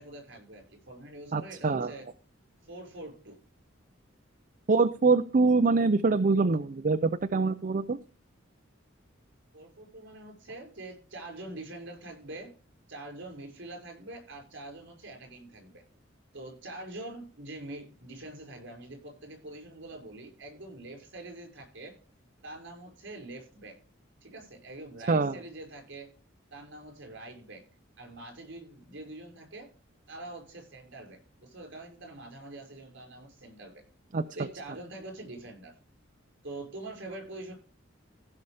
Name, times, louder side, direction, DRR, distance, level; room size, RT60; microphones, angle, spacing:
voice 1, 0.0-2.1 2.7-3.4 9.5-12.5 12.9-15.8 16.3-21.9 22.4-23.8 24.2-26.1 26.5-27.6 28.0-29.7 30.1-33.8 34.4-35.7 36.4-37.5, right 2 dB, 65° right, 2 dB, 5.4 m, -44 dB
voice 2, 1.3-1.9 4.7-8.0 25.1-25.4 34.1-34.2, right 3 dB, 45° right, 10 dB, 0.5 m, -24 dB
16.0 x 5.6 x 4.9 m, 0.36 s
head